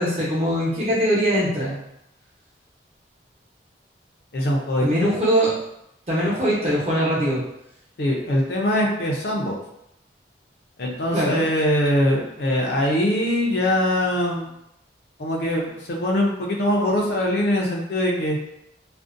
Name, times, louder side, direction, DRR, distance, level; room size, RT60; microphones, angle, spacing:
voice 1, 0.0-1.8 4.8-5.6 6.1-7.4 11.1-11.4, equal, 35° right, -7 dB, 0.8 m, -21 dB
voice 2, 4.3-5.1 8.0-9.5 10.8-14.5 15.2-18.4, left 1 dB, 65° left, -1 dB, 0.5 m, -22 dB
2.5 x 2.1 x 2.5 m, 0.81 s
head